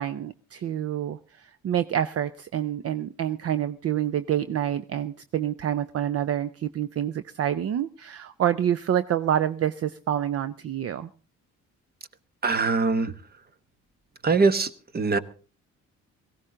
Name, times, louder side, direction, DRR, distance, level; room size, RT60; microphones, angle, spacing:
voice 1, 0.0-11.1, right 10 dB, 50° right, 14 dB, 0.6 m, -27 dB
voice 2, 12.4-13.1 14.2-15.2, right 4 dB, 30° right, 14 dB, 1.1 m, -22 dB
17.5 x 16.0 x 3.8 m, 0.37 s
cardioid pair, 90°, 30 cm